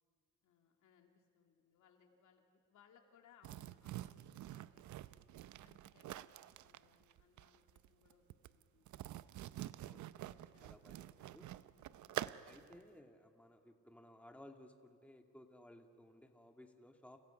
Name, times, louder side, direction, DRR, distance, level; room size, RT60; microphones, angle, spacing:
voice 1, 0.4-5.3 5.6-9.0 9.8-10.7 11.0-12.3, left 7 dB, 80° left, 3 dB, 3.0 m, -70 dB
sound 1, 3.4-12.8, right 13 dB, 75° right, 0.7 m, -48 dB
voice 2, 9.8-10.3 10.6-11.5 12.1-17.2, left 1 dB, 5° left, 4 dB, 2.2 m, -60 dB
30.0 x 30.0 x 5.9 m, 2.2 s
cardioid pair, 90°, 30 cm